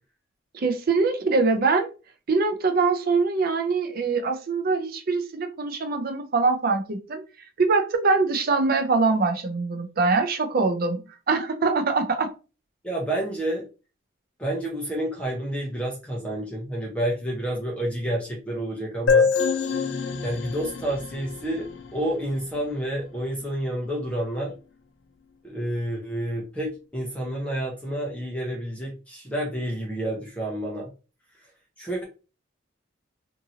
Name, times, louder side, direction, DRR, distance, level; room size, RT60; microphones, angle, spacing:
voice 1, 0.5-1.9 2.3-7.2 7.6-11.0 11.3-12.3, right 4 dB, 50° right, 0.5 m, -23 dB
voice 2, 12.8-13.7 14.4-19.3 20.2-24.5 25.4-30.9 31.8-32.0, right 1 dB, 5° left, 0.6 m, -29 dB
sound 1, 19.1-22.6, left 5 dB, 70° left, 0.4 m, -25 dB
2.7 x 2.6 x 2.7 m
head